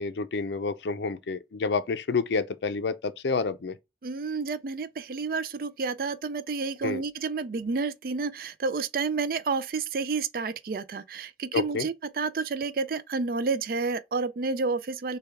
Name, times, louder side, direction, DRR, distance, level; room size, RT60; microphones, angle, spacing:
voice 1, 0.0-3.8 6.8-7.0 11.5-11.9, left 4 dB, 80° left, 0.5 m, -29 dB
voice 2, 4.0-15.2, right 4 dB, 55° right, 0.4 m, -30 dB
6.7 x 2.3 x 3.5 m
head